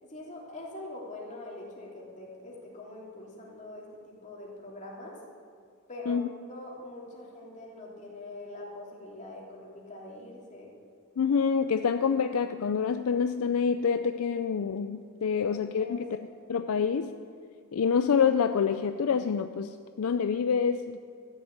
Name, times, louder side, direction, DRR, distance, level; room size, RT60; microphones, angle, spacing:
voice 1, 0.0-5.2 5.9-6.2 6.5-10.7 15.4-16.0 16.4-16.5, left 2 dB, 35° left, -4 dB, 3.0 m, -44 dB
voice 2, 11.2-16.0 16.5-17.1 17.7-21.0, left 6 dB, 65° left, 9 dB, 0.4 m, -27 dB
13.5 x 7.2 x 8.7 m, 2.3 s
head